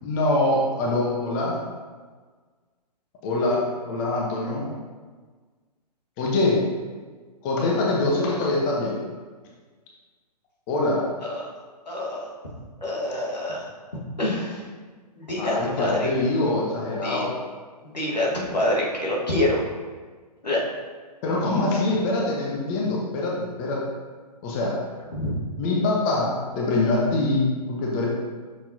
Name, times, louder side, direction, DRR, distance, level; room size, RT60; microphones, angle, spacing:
voice 1, 0.0-1.5 3.2-4.7 6.2-6.6 7.4-9.0 10.7-11.0 15.4-17.3 21.2-23.8 24.4-24.8 25.6-28.1, left 2 dB, 30° left, -2 dB, 1.1 m, -24 dB
voice 2, 11.9-12.3 12.8-14.6 15.2-16.1 17.0-17.2 17.9-19.6 20.4-20.6 25.1-25.3, left 1 dB, 85° left, -4 dB, 1.8 m, -26 dB
6.5 x 5.8 x 2.8 m, 1.4 s
figure-of-eight pair, 125°, 21 cm